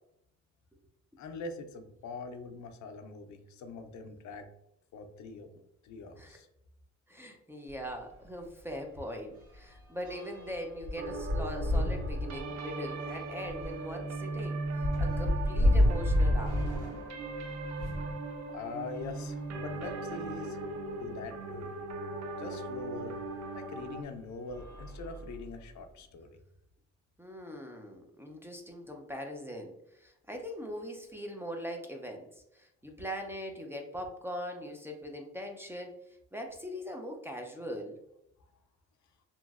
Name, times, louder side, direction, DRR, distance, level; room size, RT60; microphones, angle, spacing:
voice 1, 1.2-4.5 4.9-5.5 5.8-6.5 18.5-20.6 21.0-21.7 22.4-23.2 23.5-26.3, left 3 dB, 70° left, 7 dB, 0.5 m, -43 dB
voice 2, 7.1-16.6 27.2-32.3 32.5-35.9 36.3-38.0, equal, 10° right, 2 dB, 0.5 m, -41 dB
sound 1, 7.7-7.9 8.2-8.3 8.7-18.2 18.9-20.2 20.9-21.0 21.2-21.3 23.0-23.2 23.8-24.0 24.4-25.7, left 1 dB, 80° right, 1.3 m, -32 dB
sound 2, 10.9-24.0, right 3 dB, 65° right, 0.5 m, -38 dB
2.9 x 2.5 x 2.3 m, 0.78 s
cardioid pair, 90°, 30 cm